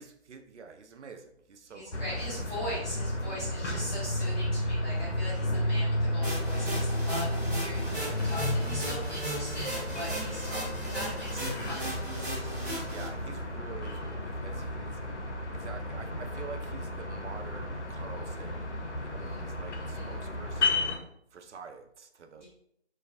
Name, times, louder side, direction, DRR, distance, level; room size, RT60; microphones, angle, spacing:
voice 1, 0.0-2.1 12.8-20.9 21.3-22.4, right 5 dB, 90° right, 6 dB, 0.5 m, -47 dB
sound 1, 1.7-6.9, left 1 dB, 45° left, 0.4 m, -53 dB
voice 2, 1.7-12.7 19.2-19.4 19.9-20.1 22.4-22.5, equal, 10° right, -16 dB, 0.7 m, -41 dB
sound 2, 1.9-21.0, left 1 dB, 90° left, 0.6 m, -33 dB
sound 3, 6.2-13.1, right 1 dB, 50° right, 0.7 m, -37 dB
2.3 x 2.3 x 2.4 m, 0.71 s
figure-of-eight pair, 165°, 34 cm